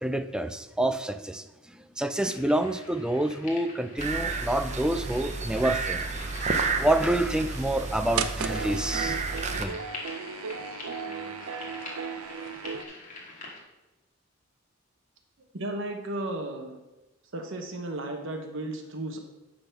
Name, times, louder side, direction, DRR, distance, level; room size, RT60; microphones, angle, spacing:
voice 1, 0.0-6.0 6.8-9.2 9.6-9.8, right 1 dB, 5° right, 10 dB, 0.3 m, -28 dB
sound 1, 2.2-13.6, left 2 dB, 40° left, 1.8 m, -45 dB
sound 2, 4.0-9.6, right 4 dB, 35° right, 0.7 m, -31 dB
sound 3, 8.2-12.8, right 6 dB, 85° right, 0.5 m, -35 dB
voice 2, 15.5-16.8 17.3-19.2, right 1 dB, 65° right, 4 dB, 1.1 m, -34 dB
10.0 x 4.0 x 5.8 m, 1.1 s
head